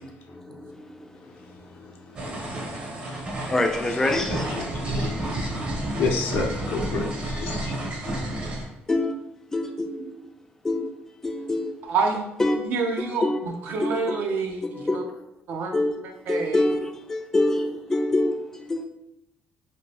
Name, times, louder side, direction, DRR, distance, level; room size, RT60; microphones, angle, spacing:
voice 1, 0.0-4.4 8.0-8.4 8.9-9.2 9.5-10.3 10.6-10.9 11.2-11.7 12.4-12.6 13.0-13.4 13.8-14.2 14.6-15.1 15.7-16.0 16.3-18.8, left 2 dB, 15° left, 4 dB, 0.3 m, -27 dB
sound 1, 2.2-8.6, right 1 dB, 30° right, 0.7 m, -30 dB
voice 2, 4.3-5.1 6.0-7.7, left 4 dB, 65° left, 3 dB, 0.5 m, -30 dB
voice 3, 11.8-12.3 12.6-14.6 14.9-15.0 15.5-15.7 16.3-16.7, right 4 dB, 60° right, 3 dB, 0.5 m, -27 dB
2.6 x 2.5 x 3.2 m, 0.81 s
cardioid pair, 145°, 4 cm